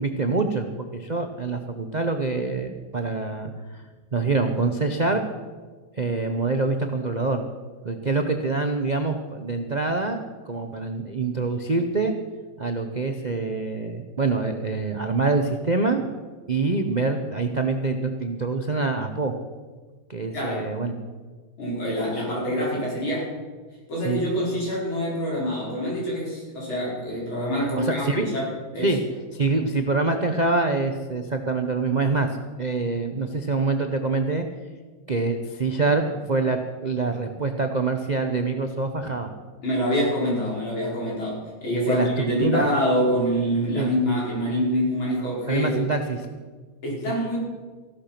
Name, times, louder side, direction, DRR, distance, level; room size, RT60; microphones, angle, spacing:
voice 1, 0.0-3.5 4.1-5.2 6.0-7.4 7.8-12.1 12.6-16.0 16.5-19.3 20.1-20.9 24.0-24.2 27.8-28.3 28.8-29.0 29.3-34.5 35.1-39.3 41.9-42.7 43.7-43.9 45.5-46.3 47.1-47.2, right 3 dB, 75° right, 5 dB, 0.4 m, -25 dB
voice 2, 21.6-23.3 23.9-28.5 28.7-29.0 39.6-45.7 46.8-47.4, equal, 70° left, -4 dB, 5.8 m, -25 dB
15.5 x 12.0 x 5.8 m, 1.4 s
omnidirectional pair, 2.3 m